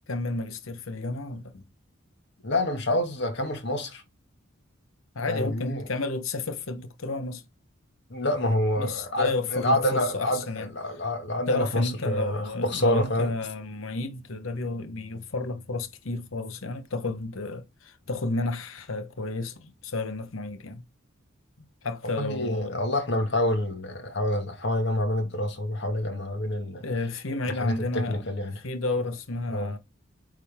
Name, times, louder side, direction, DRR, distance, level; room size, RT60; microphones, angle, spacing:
voice 1, 0.1-1.6 5.1-7.4 8.8-10.7 11.5-20.8 21.8-22.8 26.8-28.2 28.6-29.8, left 3 dB, 75° left, 1.0 m, -31 dB
voice 2, 2.4-4.0 5.3-5.9 8.1-13.3 22.2-26.9 27.5-28.5 29.5-29.7, left 1 dB, 60° left, 1.9 m, -27 dB
9.1 x 3.7 x 3.5 m
head